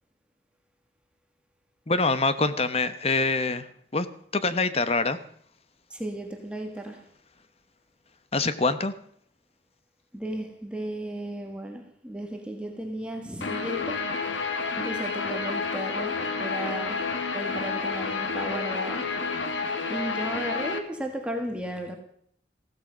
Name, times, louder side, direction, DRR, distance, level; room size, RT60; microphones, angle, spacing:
voice 1, 1.9-3.7 3.9-4.1 4.3-5.2 8.3-8.9, left 3 dB, 35° left, 12 dB, 1.0 m, -24 dB
voice 2, 5.9-7.0 10.1-14.1 14.8-19.2 19.9-22.0, right 1 dB, 5° right, 4 dB, 1.6 m, -35 dB
Guitar, 13.4-20.8, left 4 dB, 90° left, 1.9 m, -30 dB
15.0 x 13.5 x 5.2 m, 0.65 s
head